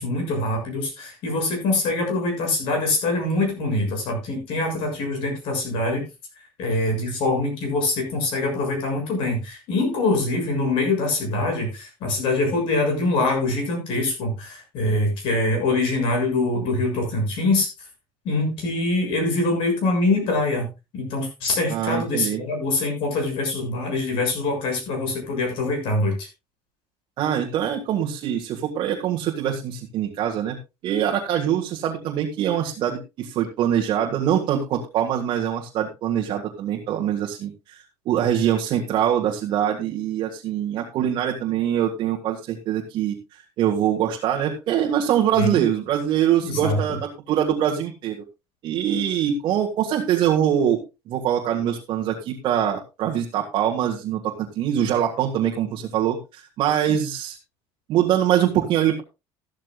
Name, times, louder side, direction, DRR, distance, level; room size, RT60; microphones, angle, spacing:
voice 1, 0.0-6.0 6.6-17.7 18.3-26.3 45.4-45.6 46.4-46.8, left 2 dB, 55° left, 3 dB, 6.9 m, -24 dB
voice 2, 21.7-22.4 27.2-30.6 30.8-48.2 48.6-57.4 57.9-59.0, right 10 dB, 45° right, -1 dB, 1.7 m, -23 dB
13.5 x 13.5 x 2.4 m, 0.26 s
cardioid pair, 170°, 11 cm